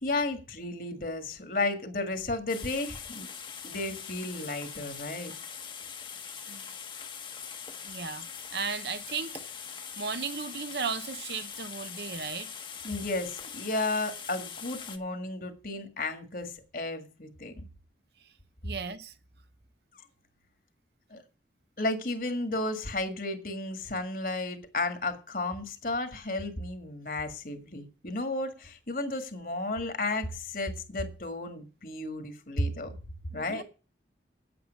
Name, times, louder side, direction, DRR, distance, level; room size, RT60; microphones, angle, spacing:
voice 1, 0.0-3.3 3.6-5.3 12.8-17.6 21.1-21.2 21.8-32.9 33.3-33.6, left 2 dB, 50° left, 1.8 m, -33 dB
sound 1, 2.5-15.0, left 7 dB, 25° left, 1.1 m, -42 dB
voice 2, 7.8-9.3 10.0-12.5 18.6-19.1 33.3-33.6, right 5 dB, 65° right, 0.9 m, -35 dB
9.0 x 8.7 x 6.3 m
head